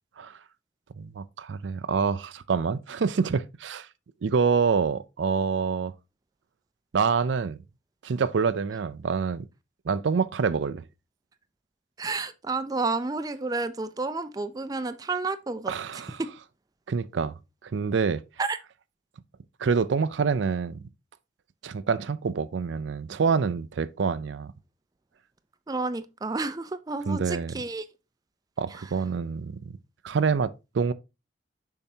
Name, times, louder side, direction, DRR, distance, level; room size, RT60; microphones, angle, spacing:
voice 1, 1.0-3.9 4.2-5.9 6.9-7.6 8.0-9.5 9.9-10.8 15.7-16.2 16.9-17.3 17.6-18.2 19.6-20.8 21.6-24.5 27.1-27.6 28.6-29.6 30.0-30.9, right 5 dB, 80° right, 0.4 m, -26 dB
voice 2, 12.0-15.7 16.2-16.3 18.4-18.6 25.7-27.8, right 3 dB, 20° right, 0.4 m, -30 dB
7.1 x 5.6 x 2.7 m
head